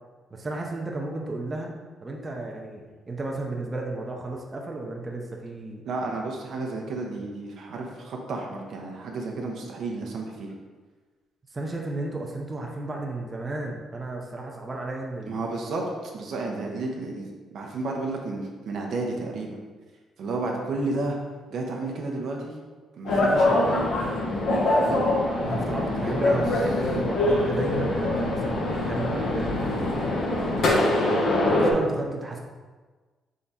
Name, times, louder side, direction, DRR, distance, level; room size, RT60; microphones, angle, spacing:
voice 1, 0.3-5.8 11.5-15.4 25.4-30.0 30.7-32.4, right 2 dB, 25° right, 0 dB, 0.6 m, -33 dB
voice 2, 5.9-10.5 15.3-19.6 20.2-21.2 21.5-22.5 22.9-23.9 24.7-25.0 26.0-26.4, right 3 dB, 70° right, 0 dB, 0.7 m, -32 dB
sound 1, 23.1-31.7, left 2 dB, 70° left, 0.9 m, -24 dB
3.7 x 3.4 x 4.2 m, 1.4 s
cardioid pair, 90°, 0 cm